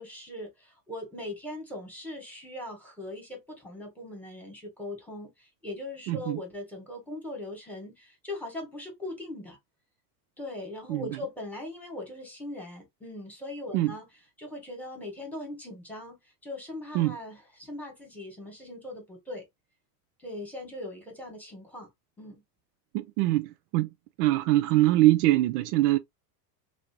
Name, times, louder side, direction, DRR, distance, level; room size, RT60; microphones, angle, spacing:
voice 1, 0.0-9.6 10.4-14.1 14.4-19.4 20.2-21.9 22.2-22.3, left 1 dB, 5° left, 1.4 m, -40 dB
voice 2, 6.1-6.4 10.9-11.1 13.7-13.9 16.9-17.2 22.9-23.9 24.2-26.0, right 16 dB, 70° right, 0.5 m, -23 dB
3.1 x 2.6 x 2.7 m
supercardioid pair, 125°, 49 cm